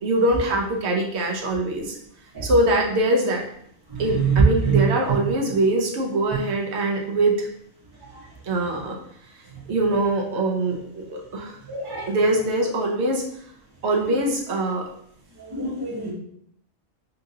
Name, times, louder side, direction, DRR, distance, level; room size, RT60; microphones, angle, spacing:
voice 1, 0.0-2.0 2.4-3.4 4.0-7.5 8.4-9.0 9.7-11.5 12.1-13.2 13.8-14.8, right 1 dB, 60° right, 0 dB, 1.0 m, -23 dB
voice 2, 3.9-4.8 11.7-12.1 15.4-16.1, right 5 dB, 20° right, -5 dB, 1.0 m, -23 dB
5.2 x 2.5 x 2.7 m, 0.69 s
omnidirectional pair, 1.3 m